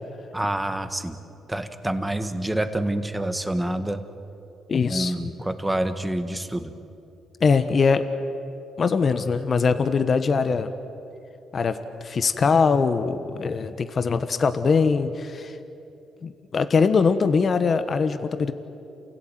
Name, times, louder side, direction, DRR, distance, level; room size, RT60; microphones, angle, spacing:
voice 1, 0.3-1.1 1.5-4.0 4.9-6.7, right 1 dB, 10° right, 9 dB, 1.7 m, -27 dB
voice 2, 4.7-5.1 7.4-8.1 8.8-10.7 11.5-15.6 16.2-18.5, left 5 dB, 45° left, 10 dB, 1.2 m, -22 dB
28.5 x 16.5 x 9.3 m, 2.8 s
cardioid pair, 90°, 0 cm